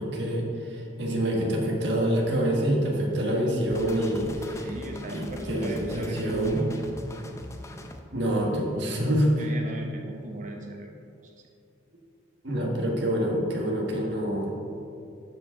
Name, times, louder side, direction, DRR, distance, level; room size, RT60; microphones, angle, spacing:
voice 1, 0.0-4.7 5.1-6.7 8.1-9.5 12.4-14.5, right 1 dB, 60° right, -1 dB, 1.4 m, -26 dB
sound 1, 3.7-8.0, left 1 dB, 15° left, 0.4 m, -42 dB
voice 2, 4.6-6.7 9.4-10.9, right 1 dB, 40° right, 1 dB, 0.9 m, -38 dB
11.5 x 4.8 x 3.7 m, 2.5 s
head